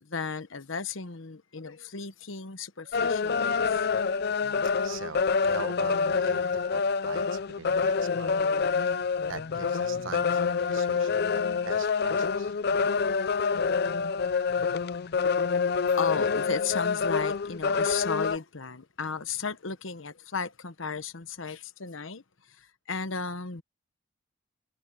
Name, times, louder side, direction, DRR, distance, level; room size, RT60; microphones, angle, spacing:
voice 1, 0.0-3.9 16.0-23.6, left 5 dB, 75° left, 1.1 m, -35 dB
sound 1, 2.9-18.4, left 5 dB, 50° left, 0.5 m, -27 dB
voice 2, 4.8-8.3 8.6-9.0 9.2-13.2, right 4 dB, 75° right, 1.2 m, -43 dB
head